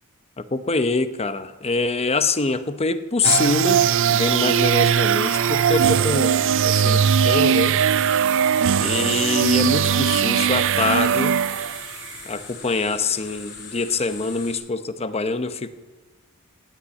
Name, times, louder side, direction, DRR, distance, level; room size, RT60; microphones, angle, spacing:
voice 1, 0.4-3.8 4.1-6.4 6.6-7.8 8.8-11.4 12.3-15.7, left 3 dB, 30° left, 10 dB, 0.8 m, -24 dB
sound 1, 3.2-12.1, right 8 dB, 60° right, 0.4 m, -19 dB
sound 2, 3.6-14.5, left 5 dB, 55° left, 3.6 m, -40 dB
18.0 x 8.9 x 8.3 m, 1.3 s
head